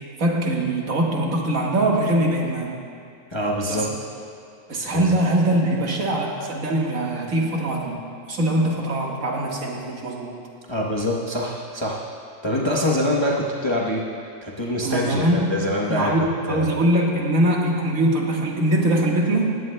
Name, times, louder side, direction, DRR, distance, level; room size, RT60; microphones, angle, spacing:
voice 1, 0.2-2.7 3.7-3.9 4.7-10.3 14.8-15.6 15.9-19.6, right 1 dB, 90° right, -1 dB, 2.0 m, -22 dB
voice 2, 3.3-3.9 4.9-5.2 10.7-12.0 12.4-14.0 14.4-16.1 16.5-16.7, left 1 dB, 25° left, -4 dB, 0.9 m, -24 dB
20.0 x 15.5 x 2.2 m, 2.4 s
omnidirectional pair, 1.4 m